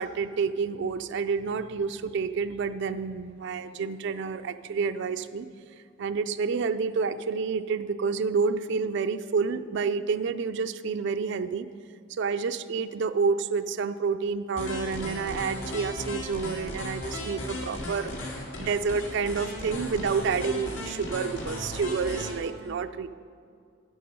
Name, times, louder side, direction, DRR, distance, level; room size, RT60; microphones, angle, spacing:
voice 1, 0.0-5.5 6.0-11.7 12.1-23.1, right 5 dB, 60° right, 10 dB, 0.4 m, -29 dB
sound 1, 14.5-22.3, left 1 dB, 75° left, 2.1 m, -36 dB
9.9 x 8.6 x 5.3 m, 2.3 s
head